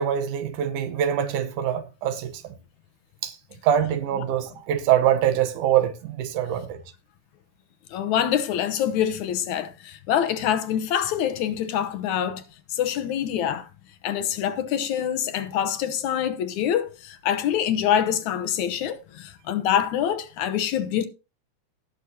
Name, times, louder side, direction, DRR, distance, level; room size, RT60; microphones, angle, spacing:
voice 1, 0.0-2.3 3.2-3.3 3.6-6.7, right 10 dB, 80° right, 2.5 m, -24 dB
voice 2, 7.9-12.4 12.7-13.7 14.0-21.1, left 9 dB, 75° left, 2.2 m, -25 dB
17.5 x 6.5 x 2.8 m
omnidirectional pair, 3.6 m